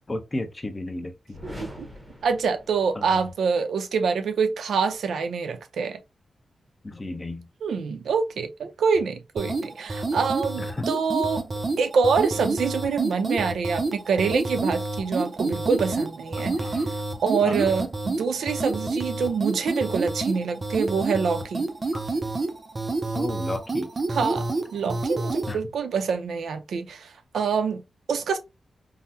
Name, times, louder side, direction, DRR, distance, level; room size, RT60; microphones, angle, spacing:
voice 1, 0.0-1.4 3.0-3.2 6.8-7.5 10.6-10.9 16.4-16.9 17.4-17.7 21.9-22.0 23.1-23.9 25.5-25.6, left 2 dB, 20° left, 0.5 m, -34 dB
sound 1, 1.3-3.3, equal, 10° right, 0.8 m, -42 dB
voice 2, 2.2-6.0 7.6-11.4 11.8-16.6 17.2-21.7 24.1-24.5 24.7-27.1 27.3-27.8 28.1-28.4, right 5 dB, 85° right, 0.5 m, -25 dB
sound 2, 9.4-25.6, right 2 dB, 30° right, 0.4 m, -29 dB
3.7 x 2.0 x 2.7 m
wide cardioid pair, 155°, 0 cm